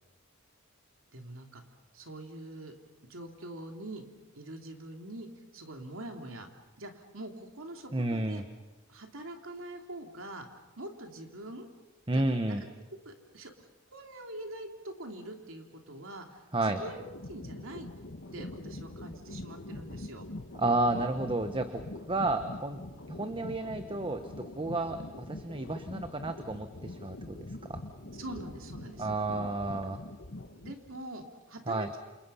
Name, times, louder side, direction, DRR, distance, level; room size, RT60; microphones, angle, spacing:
voice 1, 1.1-1.6 1.9-2.7 3.1-4.0 4.3-5.3 5.5-6.5 6.8-8.4 8.9-11.7 12.1-12.6 13.0-17.9 18.3-20.3 28.1-29.1 30.6-32.0, right 1 dB, 70° right, 3 dB, 3.1 m, -44 dB
voice 2, 7.9-8.4 12.1-12.6 16.5-16.8 20.5-21.8 22.1-22.8 23.1-24.2 24.6-27.4 27.7-27.8 29.0-30.0 31.7-31.9, right 2 dB, 25° right, 8 dB, 1.1 m, -31 dB
sound 1, 16.8-31.0, left 2 dB, 60° left, 1.4 m, -44 dB
29.0 x 27.5 x 5.7 m, 1.1 s
head